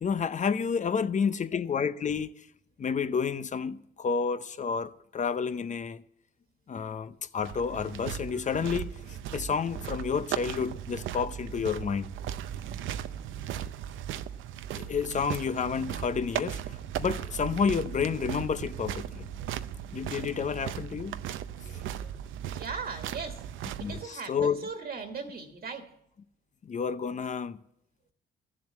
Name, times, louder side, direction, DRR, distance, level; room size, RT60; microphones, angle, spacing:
voice 1, 0.0-2.4 2.8-6.0 6.7-8.9 9.3-12.1 14.7-16.6 17.0-19.3 19.9-21.1 23.8-24.6 26.6-27.6, left 6 dB, 40° left, 0.7 m, -30 dB
sound 1, 7.4-24.1, right 10 dB, 80° right, 0.6 m, -37 dB
voice 2, 22.5-23.4 23.8-25.9, right 5 dB, 50° right, 1.6 m, -38 dB
13.5 x 7.6 x 7.3 m
cardioid pair, 90°, 20 cm